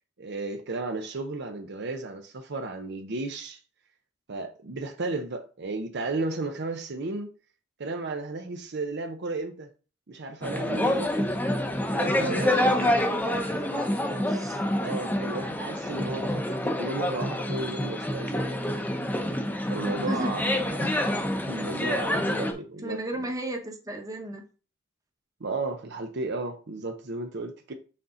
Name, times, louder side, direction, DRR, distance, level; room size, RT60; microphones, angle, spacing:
voice 1, 0.2-3.6 4.3-7.3 7.8-9.7 10.1-11.3 11.9-12.9 14.8-18.5 19.7-20.9 21.5-23.0 25.4-27.7, right 3 dB, 60° right, 0.7 m, -34 dB
sound 1, 10.4-22.5, left 1 dB, 10° left, 0.8 m, -27 dB
voice 2, 12.2-14.6 20.0-20.3 22.8-24.5, right 1 dB, 15° right, 1.1 m, -35 dB
6.4 x 4.2 x 3.7 m
head